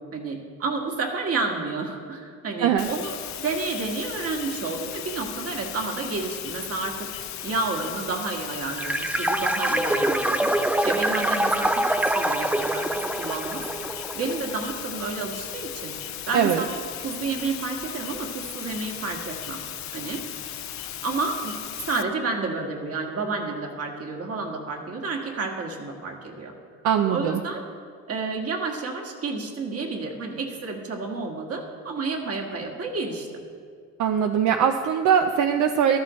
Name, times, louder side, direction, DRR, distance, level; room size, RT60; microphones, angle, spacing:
voice 1, 0.1-7.1 7.4-13.6 14.1-15.9 16.3-16.7 17.0-19.6 19.9-20.2 21.0-21.6 21.8-26.5 27.1-27.6 28.1-33.3, right 3 dB, 50° right, 1 dB, 1.8 m, -30 dB
sound 1, 2.8-22.0, left 11 dB, 65° left, 0.7 m, -36 dB
sound 2, 8.8-14.5, right 1 dB, 5° right, 0.4 m, -25 dB
voice 2, 16.3-16.6 26.8-27.4 34.0-36.0, right 8 dB, 80° right, 6 dB, 0.6 m, -21 dB
13.5 x 12.5 x 3.2 m, 2.1 s
cardioid pair, 90°, 30 cm